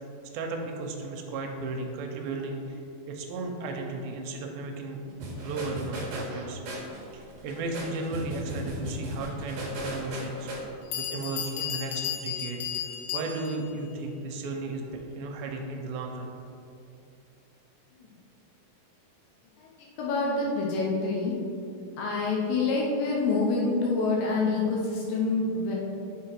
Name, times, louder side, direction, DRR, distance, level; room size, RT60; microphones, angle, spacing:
voice 1, 0.3-2.8 3.1-6.6 7.1-12.6 13.1-16.3, right 3 dB, 80° right, 2 dB, 2.4 m, -35 dB
sound 1, 5.2-10.5, equal, 60° right, 1.9 m, -36 dB
Bell, 10.5-10.6 10.9-13.7, left 9 dB, 90° left, 2.7 m, -34 dB
voice 2, 20.0-21.3 22.0-25.8, left 3 dB, 75° left, -3 dB, 2.3 m, -27 dB
7.5 x 3.8 x 4.6 m, 2.6 s
omnidirectional pair, 4.4 m